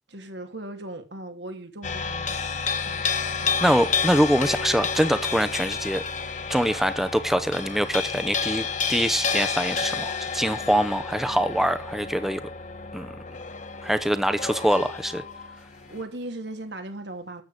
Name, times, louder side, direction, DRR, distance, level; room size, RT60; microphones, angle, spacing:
voice 1, 0.1-3.5 15.8-17.4, right 1 dB, 80° right, 2.8 m, -38 dB
sound 1, 1.8-16.0, left 5 dB, 45° left, 1.4 m, -30 dB
voice 2, 3.6-6.0 6.5-12.4 12.9-13.1 13.8-15.2, equal, ahead, 0.7 m, -24 dB
12.5 x 8.4 x 4.9 m
head